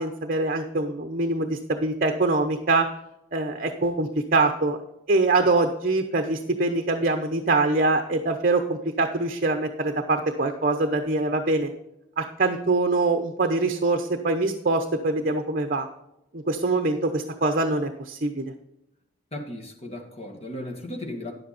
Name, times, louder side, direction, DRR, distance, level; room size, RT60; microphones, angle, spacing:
voice 1, 0.0-2.9 3.3-4.8 5.1-11.7 12.2-15.9 16.3-18.4, right 2 dB, 45° right, 6 dB, 0.8 m, -24 dB
voice 2, 19.3-21.3, left 1 dB, 30° left, 2 dB, 1.9 m, -36 dB
10.5 x 8.1 x 4.3 m, 0.84 s
head